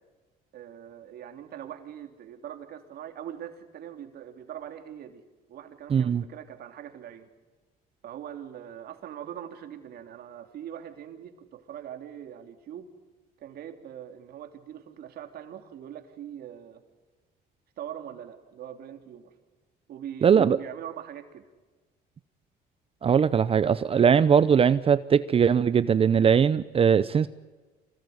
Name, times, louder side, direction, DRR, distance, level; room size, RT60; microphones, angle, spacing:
voice 1, 0.5-5.2 5.5-7.3 8.0-12.9 13.4-16.8 17.8-19.3 19.9-21.5, right 10 dB, 65° right, 6 dB, 3.1 m, -42 dB
voice 2, 5.9-6.2 20.2-20.6 23.0-27.3, right 7 dB, 35° right, 15 dB, 0.7 m, -20 dB
26.0 x 18.5 x 9.5 m, 1.3 s
cardioid pair, 110°, 17 cm